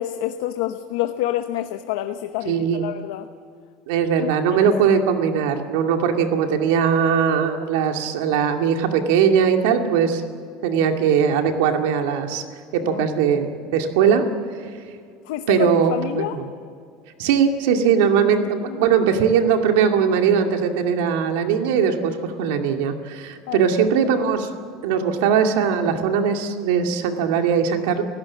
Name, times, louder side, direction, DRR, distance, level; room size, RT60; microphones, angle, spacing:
voice 1, 0.0-3.3 4.2-4.7 12.8-13.1 15.2-16.4 18.6-18.9 23.5-23.6, left 13 dB, 75° left, 8 dB, 0.9 m, -28 dB
voice 2, 2.5-2.9 3.9-10.2 10.6-12.4 12.7-14.2 14.6-14.7 15.5-16.5 17.2-24.5 24.8-28.0, right 7 dB, 75° right, 4 dB, 2.3 m, -20 dB
29.5 x 16.0 x 7.4 m, 2.2 s
cardioid pair, 180°, 0 cm